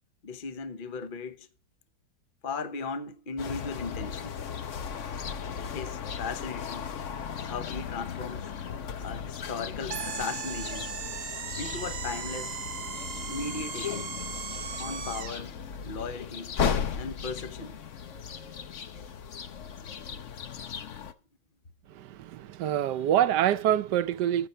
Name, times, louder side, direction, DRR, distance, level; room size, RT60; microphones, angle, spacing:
voice 1, 0.2-1.5 2.4-4.4 5.7-6.9 7.4-8.5 9.0-10.9 11.5-12.6 13.2-14.0 14.8-15.6 15.8-16.5 16.9-17.8, left 4 dB, 35° left, 1.1 m, -37 dB
sound 1, 3.4-21.1, left 7 dB, 55° left, 1.1 m, -36 dB
ray gun, 9.9-15.5, right 6 dB, 55° right, 1.3 m, -37 dB
voice 2, 21.9-24.5, right 11 dB, 85° right, 1.3 m, -26 dB
15.5 x 8.0 x 4.4 m
omnidirectional pair, 1.8 m